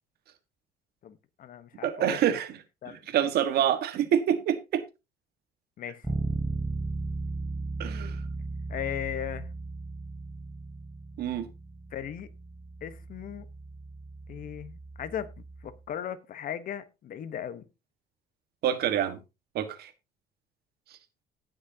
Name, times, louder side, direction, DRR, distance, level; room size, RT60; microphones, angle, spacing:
voice 1, 1.0-2.4 2.8-3.0 5.8-6.0 8.7-9.5 11.9-12.3 12.8-13.5 14.3-17.7, left 10 dB, 55° left, 1.2 m, -37 dB
voice 2, 1.8-2.6 2.9-4.8 7.8-8.1 11.2-11.5 18.6-19.2 19.5-19.9, right 9 dB, 70° right, 1.6 m, -27 dB
Bass guitar, 6.0-15.8, right 3 dB, 10° right, 1.0 m, -36 dB
18.0 x 6.4 x 2.9 m
cardioid pair, 110°, 17 cm